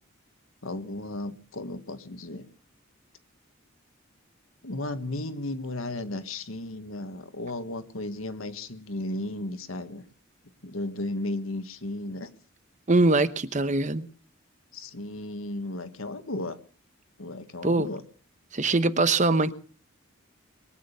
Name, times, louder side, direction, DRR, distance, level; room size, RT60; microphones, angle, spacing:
voice 1, 0.6-2.5 4.6-10.1 10.6-12.3 14.7-16.6 17.2-18.0, left 2 dB, 90° left, 10 dB, 1.6 m, -34 dB
voice 2, 12.9-14.1 17.6-17.9 18.5-19.5, right 2 dB, 35° right, 13 dB, 0.9 m, -22 dB
22.5 x 9.2 x 6.8 m, 0.44 s
head